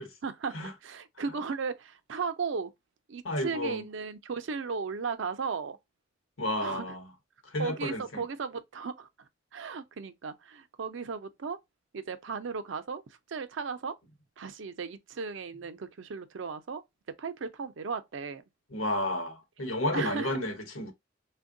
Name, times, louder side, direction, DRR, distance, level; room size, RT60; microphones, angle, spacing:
voice 1, 0.0-2.7 3.1-5.8 6.6-6.9 7.6-9.1 9.5-11.6 11.9-13.0 13.3-14.0 14.4-16.8 17.2-18.4 19.9-20.3, right 5 dB, 70° right, 0.5 m, -36 dB
voice 2, 3.2-3.8 6.4-7.1 7.4-8.2 18.7-20.9, left 1 dB, 85° left, 0.9 m, -32 dB
3.4 x 2.2 x 2.5 m
head